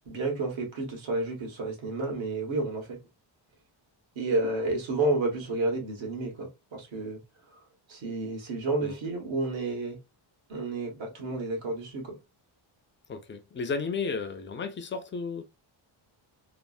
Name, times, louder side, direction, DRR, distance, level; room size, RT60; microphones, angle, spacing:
voice 1, 0.0-3.0 4.1-7.2 7.5-7.6 7.9-10.0 10.5-12.2, right 2 dB, 70° right, 1.4 m, -31 dB
voice 2, 13.1-15.4, left 5 dB, 25° left, 0.3 m, -33 dB
3.3 x 2.0 x 2.4 m
wide cardioid pair, 155°, 48 cm